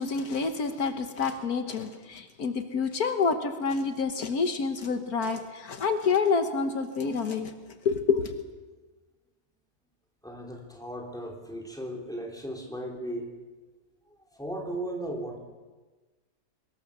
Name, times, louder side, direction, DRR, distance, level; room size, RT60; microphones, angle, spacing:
voice 1, 0.0-7.5 7.8-8.4, left 5 dB, 70° left, 7 dB, 1.7 m, -28 dB
voice 2, 10.2-13.3 14.3-15.4, right 1 dB, ahead, 0 dB, 3.8 m, -36 dB
24.0 x 20.5 x 6.8 m, 1.3 s
omnidirectional pair, 1.6 m